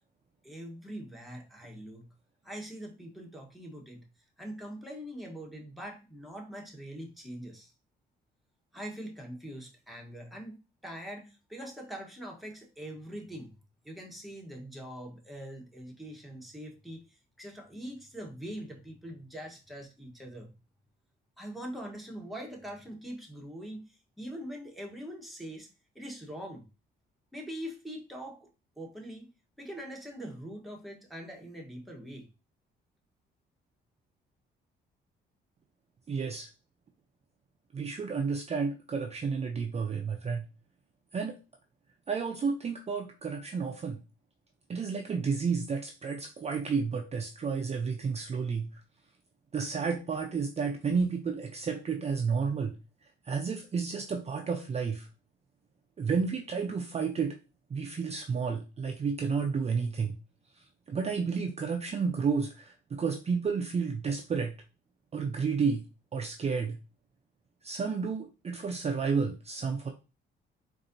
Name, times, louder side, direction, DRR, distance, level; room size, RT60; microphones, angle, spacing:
voice 1, 0.4-2.1 2.4-4.1 4.4-7.7 8.7-13.5 13.8-20.5 21.4-25.7 25.9-26.7 27.3-28.5 28.8-29.3 29.6-32.3, equal, ahead, 0 dB, 1.1 m, -43 dB
voice 2, 36.1-36.5 37.7-40.5 41.1-41.4 42.1-44.0 44.7-48.7 49.5-52.8 53.3-55.1 56.0-57.4 57.7-60.2 60.9-64.5 65.1-65.8 66.1-66.8 67.6-69.9, right 5 dB, 30° right, 3 dB, 0.5 m, -31 dB
4.0 x 2.6 x 2.6 m, 0.30 s
cardioid pair, 90°, 20 cm